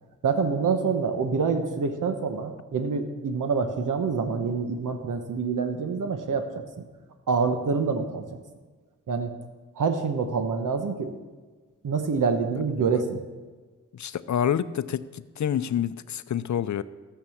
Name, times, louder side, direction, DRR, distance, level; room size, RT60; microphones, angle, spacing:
voice 1, 0.2-6.4 7.3-8.2 9.1-9.3 9.8-11.1 11.8-13.2, right 5 dB, 85° right, 7 dB, 1.2 m, -26 dB
voice 2, 13.9-16.8, left 9 dB, 65° left, 14 dB, 0.6 m, -28 dB
14.0 x 7.1 x 7.1 m, 1.4 s
wide cardioid pair, 120°, 31 cm